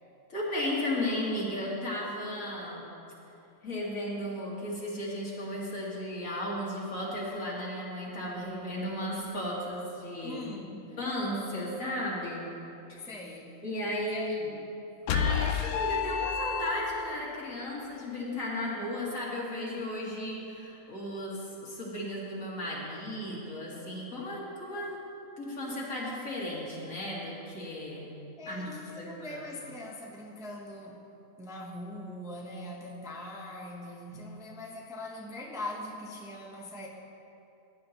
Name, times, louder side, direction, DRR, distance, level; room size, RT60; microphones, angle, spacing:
voice 1, 0.3-2.9 3.6-10.4 11.0-12.5 12.9-13.0 13.6-14.6 15.1-25.0 25.4-28.1 28.5-29.5, left 1 dB, 70° left, -5 dB, 2.5 m, -35 dB
voice 2, 10.2-10.9 13.0-13.6 14.1-14.5 28.4-31.1 31.4-36.9, left 1 dB, 5° right, -1 dB, 0.7 m, -41 dB
sound 1, 15.1-17.2, left 7 dB, 85° left, 1.1 m, -29 dB
15.0 x 9.9 x 3.0 m, 2.8 s
omnidirectional pair, 1.5 m